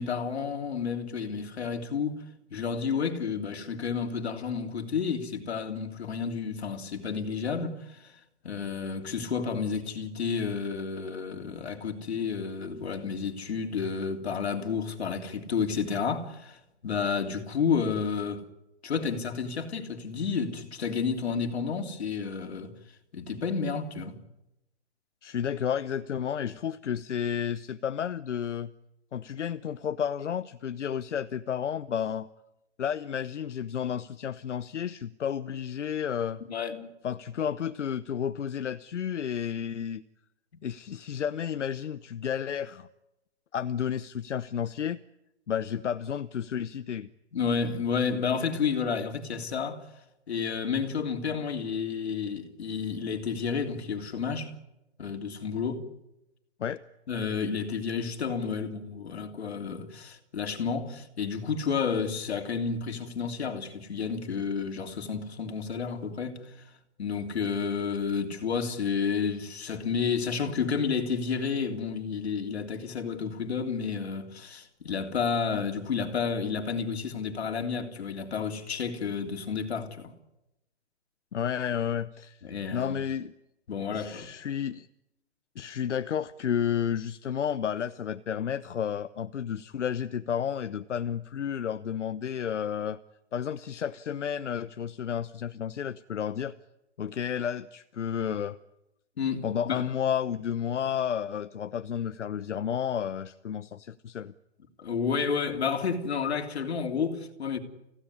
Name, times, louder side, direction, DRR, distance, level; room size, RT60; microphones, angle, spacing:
voice 1, 0.0-2.2 2.5-8.1 8.4-18.4 18.8-22.7 23.1-24.1 36.5-36.9 47.3-49.9 50.3-54.5 55.0-55.9 57.1-66.5 67.0-80.1 82.4-83.0 83.7-84.3 99.2-99.8 104.8-107.6, left 6 dB, 60° left, 3.2 m, -31 dB
voice 2, 25.2-28.7 29.1-32.3 32.8-36.4 37.0-40.0 40.6-42.9 43.5-45.0 45.5-47.1 56.6-56.8 81.3-82.4 82.7-83.3 83.9-84.9 85.6-93.0 93.3-96.5 97.0-98.6 99.4-104.3, left 8 dB, 85° left, 1.0 m, -31 dB
29.5 x 16.5 x 9.8 m
hypercardioid pair, 175°, 35 cm